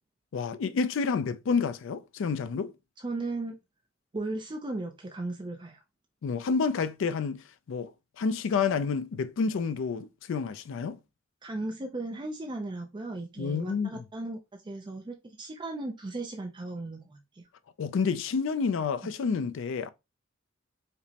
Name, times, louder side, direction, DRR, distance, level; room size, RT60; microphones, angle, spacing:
voice 1, 0.3-2.7 6.2-7.9 8.2-11.0 13.4-14.0 17.8-19.9, left 5 dB, 65° left, 0.4 m, -29 dB
voice 2, 3.0-3.5 4.1-5.8 11.4-17.4, right 2 dB, 25° right, 0.4 m, -36 dB
5.1 x 2.0 x 2.8 m
head